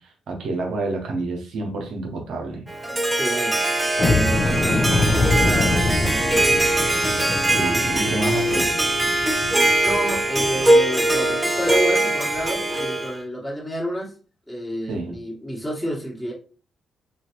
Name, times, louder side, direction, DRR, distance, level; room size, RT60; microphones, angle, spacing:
voice 1, 0.0-2.7 4.5-4.8 7.5-8.9 14.9-15.1, right 2 dB, 70° right, 1 dB, 0.9 m, -29 dB
Harp, 2.7-13.2, right 1 dB, 20° right, 0.6 m, -21 dB
voice 2, 3.1-3.6 4.1-6.4 7.2-8.3 9.8-14.1 14.5-16.3, equal, 10° left, -4 dB, 1.2 m, -30 dB
sound 1, 4.0-10.7 11.1-11.2 11.6-11.8 12.3-12.5, left 2 dB, 50° left, 0.6 m, -25 dB
3.1 x 2.4 x 2.9 m, 0.36 s
hypercardioid pair, 45°, 0 cm